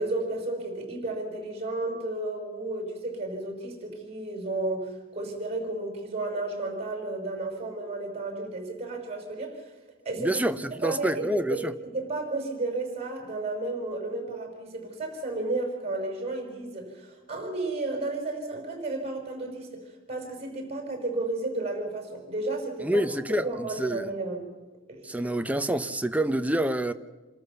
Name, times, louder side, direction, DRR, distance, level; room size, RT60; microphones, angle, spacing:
voice 1, 0.0-9.7 10.1-10.4 10.7-11.2 11.5-19.8 20.1-23.1 23.4-24.5 24.9-25.3, right 2 dB, 35° right, 5.5 m, -33 dB
voice 2, 10.2-11.7 22.8-24.1 25.0-26.9, right 1 dB, 10° right, 0.8 m, -27 dB
27.5 x 13.5 x 7.0 m
head